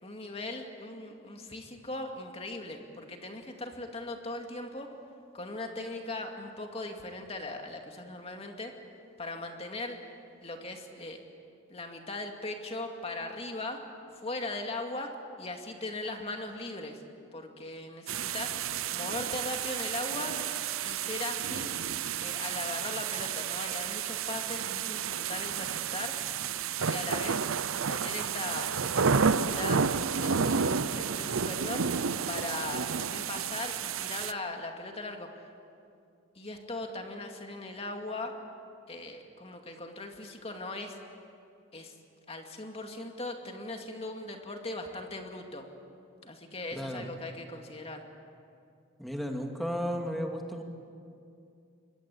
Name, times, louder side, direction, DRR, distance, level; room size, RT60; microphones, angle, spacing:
voice 1, 0.0-4.9 5.3-8.7 9.2-10.0 10.4-11.2 11.7-13.8 14.2-17.0 17.3-18.6 18.9-20.4 20.8-21.7 22.2-26.2 26.8-27.4 27.9-29.9 30.2-31.9 32.3-35.3 36.3-38.3 38.9-41.0 41.7-41.9 42.3-45.6 46.2-48.0, left 2 dB, 30° left, 3 dB, 2.4 m, -39 dB
sound 1, 18.1-34.3, right 6 dB, 90° right, 0.8 m, -31 dB
voice 2, 46.8-47.1 49.0-50.6, equal, ahead, 2 dB, 2.3 m, -34 dB
26.0 x 22.0 x 8.6 m, 2.5 s
head